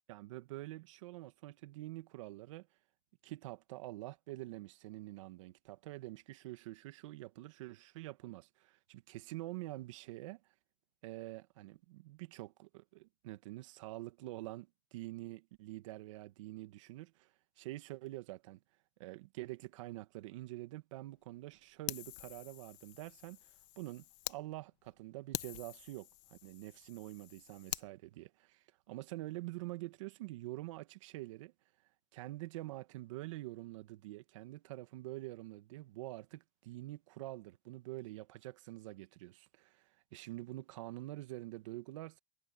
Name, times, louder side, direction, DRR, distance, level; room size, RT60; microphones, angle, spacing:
voice 1, 0.1-2.7 3.2-10.4 11.0-17.3 17.6-18.6 19.0-23.5 23.7-31.5 32.1-42.2, right 18 dB, 70° right, 1.8 m, -46 dB
Fire, 21.9-24.4 24.8-24.9 25.3-27.9, left 19 dB, 65° left, 1.2 m, -45 dB
supercardioid pair, 140°, 17 cm